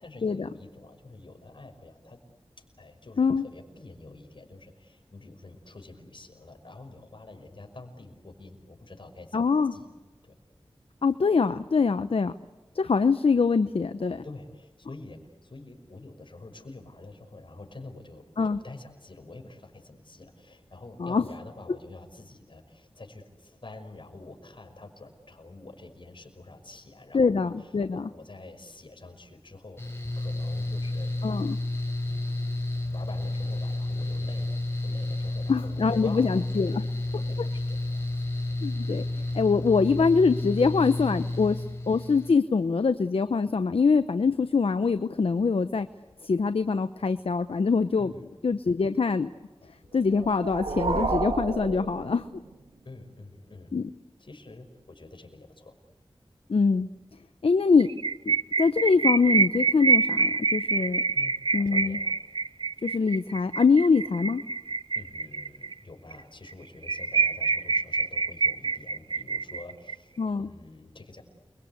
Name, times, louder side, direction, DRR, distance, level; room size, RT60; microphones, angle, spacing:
voice 1, 0.0-2.2 2.6-9.4 9.7-9.9 10.2-10.4 14.2-31.2 32.0-38.3 48.0-48.3 52.8-53.8 54.2-55.7 61.1-62.1 64.9-71.2, left 2 dB, 55° left, 4 dB, 5.7 m, -47 dB
voice 2, 9.3-9.7 11.0-12.3 12.7-14.2 18.4-18.6 21.0-21.2 27.1-28.1 31.2-31.6 35.5-36.9 38.6-39.0 39.3-45.9 46.2-48.1 48.4-49.3 49.9-52.3 53.7-53.9 56.5-56.9 57.4-57.9 58.3-61.0 61.5-62.0 62.8-64.4 70.2-70.5, left 4 dB, 75° left, 10 dB, 0.8 m, -24 dB
Mechanical fan, 29.8-42.3, left 2 dB, 25° left, 5.4 m, -31 dB
sound 1, 50.0-52.7, right 3 dB, 90° right, 2.5 m, -31 dB
sound 2, 57.8-65.7 66.1-66.2 66.5-66.6 66.8-69.9, right 4 dB, 55° right, 0.8 m, -26 dB
29.5 x 23.0 x 8.3 m, 1.2 s
wide cardioid pair, 75°, 10 cm